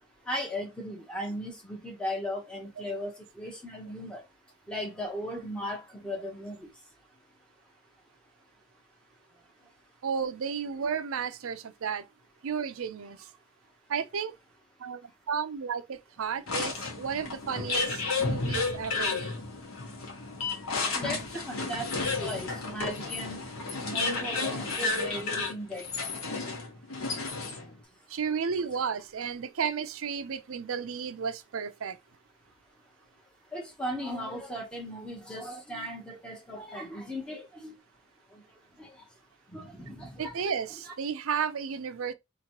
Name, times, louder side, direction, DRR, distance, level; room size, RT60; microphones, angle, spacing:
voice 1, 0.3-4.2 4.7-6.7 18.9-19.0 20.9-21.9 22.2-23.4 23.8-25.8 33.5-37.7 38.8-38.9 39.5-40.4 40.7-40.9, equal, 5° left, 0.8 m, -37 dB
voice 2, 10.0-12.1 12.4-13.3 13.9-14.3 14.8-15.0 15.3-19.5 28.1-32.0 40.2-42.1, right 6 dB, 65° right, 0.5 m, -33 dB
sound 1, 16.5-27.8, left 3 dB, 70° left, 1.2 m, -32 dB
4.2 x 2.9 x 2.9 m
head